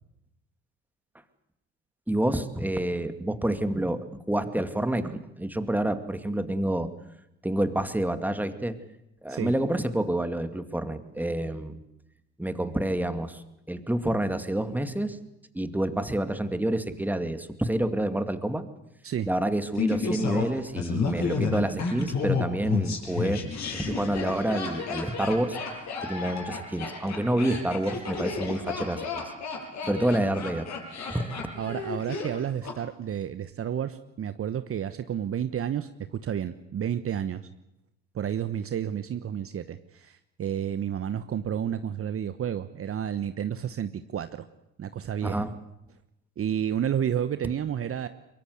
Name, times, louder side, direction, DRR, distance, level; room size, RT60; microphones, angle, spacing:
voice 1, 2.1-6.9 7.4-8.8 9.2-11.8 12.4-15.2 15.5-18.6 19.3-23.4 23.7-25.6 26.0-29.2 29.8-30.7 31.1-31.5 45.2-45.5, right 1 dB, 5° right, 9 dB, 2.4 m, -28 dB
Laughter, 19.7-32.8 33.0-33.1, left 5 dB, 50° left, 7.3 m, -31 dB
voice 2, 31.6-37.4 38.1-44.4 44.8-45.5 46.4-48.1, right 9 dB, 40° right, 11 dB, 1.2 m, -31 dB
23.5 x 23.0 x 8.2 m, 0.86 s
hypercardioid pair, 60°, 36 cm